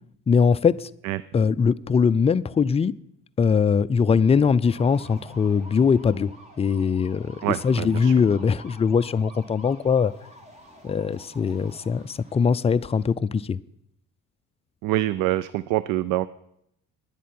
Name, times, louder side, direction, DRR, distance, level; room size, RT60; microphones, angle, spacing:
voice 1, 0.3-0.9 1.3-2.9 3.4-6.3 6.6-10.1 10.8-13.6, left 6 dB, 20° left, 0.4 m, -21 dB
sound 1, 4.6-13.1, equal, 20° right, 2.8 m, -48 dB
voice 2, 7.4-8.1 14.8-16.3, right 15 dB, 80° right, 0.5 m, -25 dB
10.5 x 8.3 x 9.4 m
cardioid pair, 110°, 31 cm